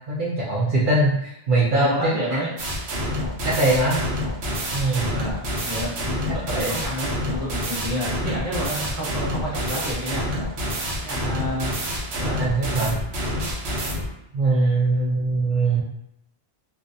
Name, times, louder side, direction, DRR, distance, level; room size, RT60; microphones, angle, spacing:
voice 1, 0.1-2.2 3.4-4.0 4.7-5.2 6.5-6.7 11.2-11.4 12.4-13.0 14.3-15.8, right 2 dB, 60° right, -6 dB, 0.6 m, -22 dB
voice 2, 1.7-2.5 5.1-10.2 11.0-11.8 12.2-12.4, equal, 15° right, -8 dB, 0.9 m, -29 dB
sound 1, 2.6-14.1, equal, 85° right, 0.9 m, -28 dB
2.5 x 2.1 x 2.5 m, 0.84 s
omnidirectional pair, 1.1 m